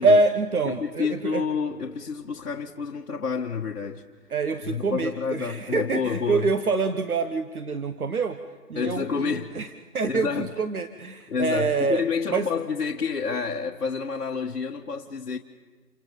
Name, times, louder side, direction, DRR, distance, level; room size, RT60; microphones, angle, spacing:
voice 1, 0.0-1.4 4.3-8.4 8.7-9.7 9.9-12.0 12.3-12.5, right 3 dB, 65° right, 9 dB, 1.3 m, -25 dB
voice 2, 0.7-4.0 4.6-6.5 8.8-9.6 10.1-10.5 11.3-15.4, left 5 dB, 65° left, -2 dB, 1.6 m, -29 dB
28.5 x 26.0 x 5.4 m, 1.4 s
hypercardioid pair, 175°, 46 cm